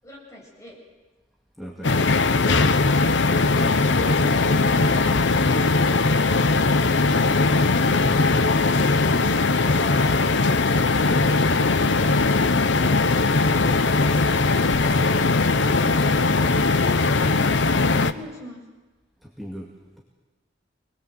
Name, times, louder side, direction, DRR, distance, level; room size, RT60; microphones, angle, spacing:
voice 1, 0.0-0.8 3.5-5.1 9.6-10.1 13.5-14.0 17.1-18.6, left 1 dB, 15° left, -3 dB, 7.8 m, -41 dB
voice 2, 1.6-2.1 8.0-8.3 19.2-20.0, equal, ahead, -2 dB, 2.1 m, -39 dB
sound 1, 1.8-18.1, left 3 dB, 85° left, 0.9 m, -20 dB
25.5 x 21.0 x 7.9 m, 1.2 s
head